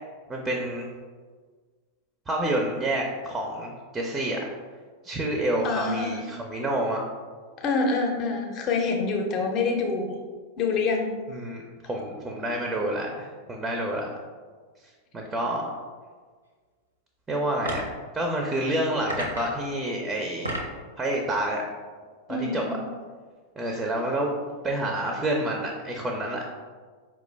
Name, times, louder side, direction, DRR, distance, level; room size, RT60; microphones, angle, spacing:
voice 1, 0.3-0.9 2.3-4.4 5.0-7.0 11.3-14.1 15.1-15.8 17.3-20.5 21.0-21.6 22.3-22.6 23.6-24.3 24.6-26.5, right 1 dB, 15° right, 1 dB, 0.4 m, -28 dB
voice 2, 5.6-6.2 7.6-10.1 10.6-11.2 22.3-22.8, left 4 dB, 35° left, 1 dB, 0.6 m, -26 dB
sound 1, 17.6-18.0 19.1-19.6 20.2-20.8, right 1 dB, 85° right, 0.6 m, -32 dB
4.6 x 2.2 x 3.2 m, 1.5 s
figure-of-eight pair, 90°, 0 cm